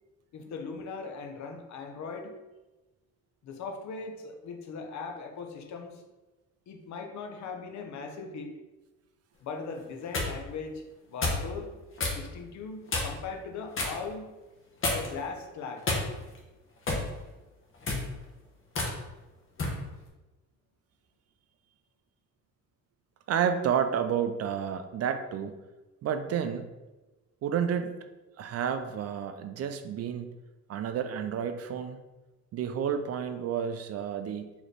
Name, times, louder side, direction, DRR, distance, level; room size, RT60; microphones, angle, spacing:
voice 1, 0.3-2.4 3.4-6.0 6.7-8.5 9.4-10.8 11.1-11.7 12.1-14.3 14.9-15.9, left 4 dB, 65° left, 4 dB, 0.7 m, -39 dB
sound 1, 9.8-10.3 11.2-11.5 12.0-12.2 12.9-13.2 13.7-14.0 14.8-15.2 15.8-16.4 16.9-17.1 17.7-18.1 18.7-18.9 19.6-19.8, left 2 dB, 45° left, 1.0 m, -29 dB
voice 2, 23.3-25.6 26.0-26.7 27.4-27.9 28.4-30.3 30.7-32.0 32.5-34.5, right 8 dB, 55° right, 9 dB, 0.4 m, -30 dB
4.0 x 3.0 x 3.3 m, 1.1 s
cardioid pair, 90°, 30 cm